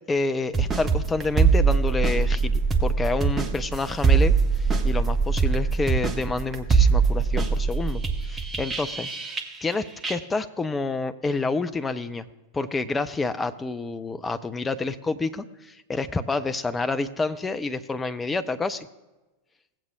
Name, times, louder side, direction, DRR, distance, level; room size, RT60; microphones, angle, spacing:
voice 1, 0.0-9.1 9.6-12.3 12.5-18.9, left 3 dB, 15° left, 10 dB, 0.5 m, -28 dB
sound 1, 0.5-9.7 10.0-10.2, right 5 dB, 15° right, 0.9 m, -22 dB
17.0 x 8.0 x 2.3 m, 1.1 s
figure-of-eight pair, 90°, 0 cm